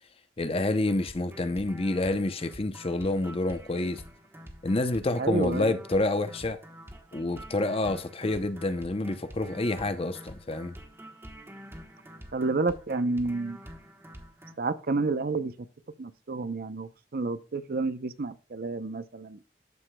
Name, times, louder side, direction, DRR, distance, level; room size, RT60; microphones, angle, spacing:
voice 1, 0.4-4.0 4.6-6.6 7.1-10.7, left 2 dB, 30° left, 0.6 m, -28 dB
sound 1, 0.9-14.6, equal, 15° right, 1.1 m, -47 dB
voice 2, 5.2-5.7 12.3-13.6 14.6-15.5 16.0-19.4, right 3 dB, 50° right, 0.6 m, -30 dB
13.0 x 4.9 x 2.2 m
head